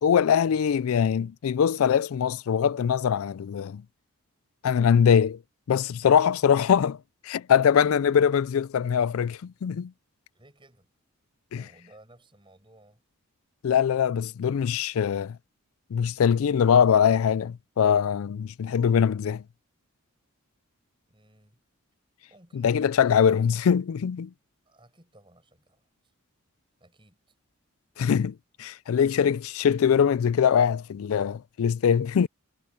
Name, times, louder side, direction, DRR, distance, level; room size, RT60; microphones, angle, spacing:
voice 1, 0.0-3.8 4.6-5.4 5.7-7.0 7.2-9.9 11.5-11.6 13.6-15.4 15.9-19.4 22.6-24.3 28.0-32.3, left 7 dB, 75° left, 0.4 m, -22 dB
voice 2, 10.3-10.9 11.5-13.0 21.1-21.6 22.3-23.4 24.6-26.1 26.8-27.3 31.8-31.9, right 1 dB, 20° right, 6.8 m, -57 dB
head